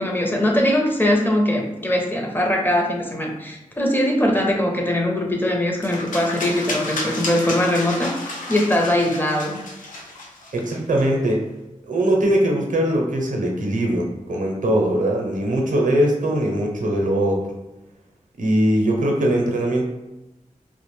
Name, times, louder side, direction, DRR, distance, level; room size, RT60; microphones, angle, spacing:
voice 1, 0.0-8.1 8.5-9.6, left 1 dB, 15° left, 0 dB, 0.5 m, -21 dB
sound 1, 5.8-11.0, left 2 dB, 85° left, 0.5 m, -32 dB
voice 2, 10.5-11.4 11.9-17.4 18.4-19.9, right 1 dB, 80° right, 1 dB, 0.5 m, -21 dB
2.4 x 2.0 x 3.1 m, 0.98 s
cardioid pair, 60°, 13 cm